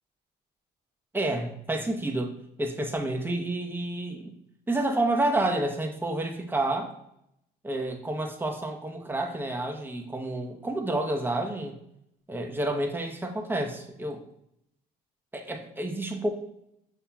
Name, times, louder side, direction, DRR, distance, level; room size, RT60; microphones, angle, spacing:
voice 1, 1.1-2.3 2.6-4.3 4.7-6.9 7.6-11.8 12.3-14.2 15.3-16.3, right 1 dB, 10° right, 2 dB, 0.8 m, -29 dB
7.0 x 2.8 x 2.3 m, 0.79 s
cardioid pair, 110°, 17 cm